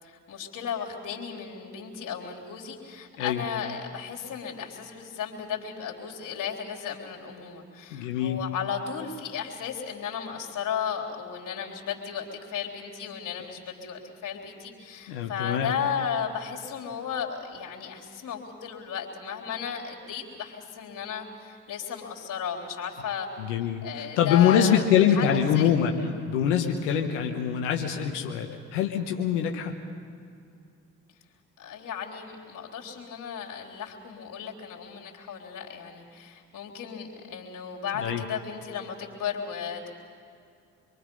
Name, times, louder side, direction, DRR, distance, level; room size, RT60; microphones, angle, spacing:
voice 1, 0.0-23.3 23.8-24.8 25.1-25.7 31.6-39.9, left 7 dB, 65° left, -2 dB, 3.6 m, -35 dB
voice 2, 7.9-8.4 15.1-15.7 23.4-25.9 26.3-29.7 38.0-38.2, left 9 dB, 90° left, 2 dB, 1.2 m, -24 dB
26.0 x 23.5 x 5.4 m, 2.4 s
hypercardioid pair, 45°, 35 cm